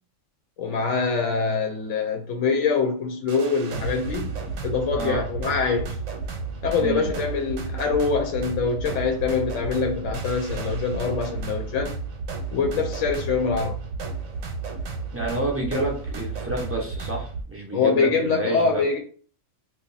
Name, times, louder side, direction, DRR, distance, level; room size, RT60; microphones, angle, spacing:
voice 1, 0.6-4.3 4.6-6.0 6.6-12.0 12.5-13.8 17.7-19.0, left 5 dB, 70° left, 0.9 m, -24 dB
sound 1, 3.3-17.4, right 4 dB, 85° right, 1.1 m, -32 dB
voice 2, 15.1-18.8, right 2 dB, 15° right, 0.4 m, -29 dB
2.7 x 2.2 x 3.8 m
omnidirectional pair, 1.4 m